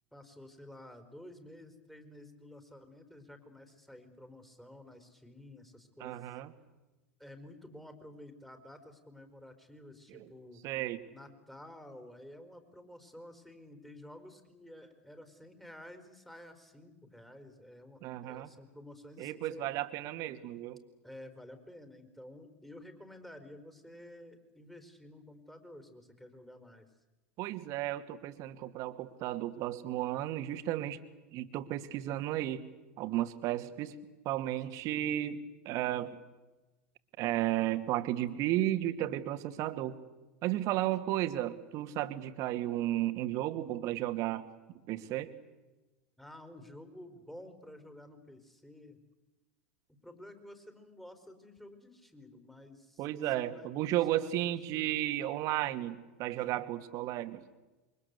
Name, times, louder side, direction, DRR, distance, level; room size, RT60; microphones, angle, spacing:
voice 1, 0.1-6.4 7.2-10.6 11.1-19.6 21.0-26.9 46.2-49.0 49.9-53.7 54.1-55.0, left 1 dB, 5° left, 8 dB, 4.7 m, -52 dB
voice 2, 6.0-6.5 10.1-10.3 10.6-11.0 18.0-18.5 19.2-20.8 27.4-31.0 31.3-32.7 33.0-33.9 34.2-36.2 37.2-40.0 40.4-44.5 44.9-45.3 53.0-57.4, right 14 dB, 50° right, 10 dB, 2.3 m, -33 dB
28.0 x 24.0 x 8.3 m, 1.1 s
hypercardioid pair, 90°, 7 cm